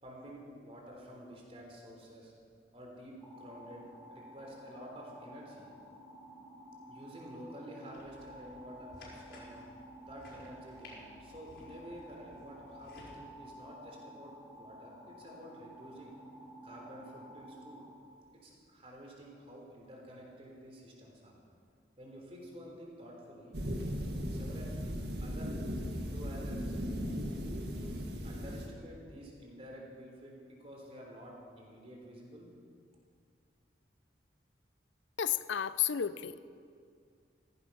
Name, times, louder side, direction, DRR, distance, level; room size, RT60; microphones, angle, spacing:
voice 1, 0.0-2.3 2.7-3.8 4.1-5.7 6.8-9.6 10.1-14.3 14.6-16.1 16.6-17.8 18.3-21.3 22.0-23.6 24.3-24.7 25.2-25.5 25.9-26.9 27.4-32.5, equal, 35° right, -1 dB, 3.6 m, -50 dB
sound 1, 3.2-18.0, equal, 10° left, 3.1 m, -52 dB
sound 2, 7.9-13.1, left 1 dB, 65° left, 5.3 m, -56 dB
sound 3, 23.5-28.7, equal, 60° right, 1.7 m, -37 dB
voice 2, 35.2-36.5, left 9 dB, 90° left, 14 dB, 0.6 m, -32 dB
16.5 x 15.0 x 5.7 m, 2.2 s
head